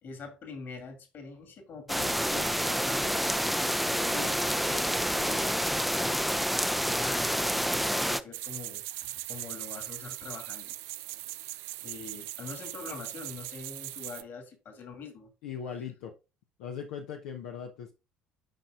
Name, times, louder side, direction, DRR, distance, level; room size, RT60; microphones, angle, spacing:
voice 1, 0.0-6.5 6.8-10.8 11.8-15.3, left 4 dB, 50° left, 2.4 m, -44 dB
sound 1, 1.9-8.2, equal, ahead, 0.6 m, -28 dB
sound 2, 8.3-14.2, right 17 dB, 65° right, 0.4 m, -40 dB
voice 2, 15.4-16.1 16.6-17.9, left 7 dB, 70° left, 0.9 m, -39 dB
8.9 x 5.5 x 2.5 m
hypercardioid pair, 55°, 5 cm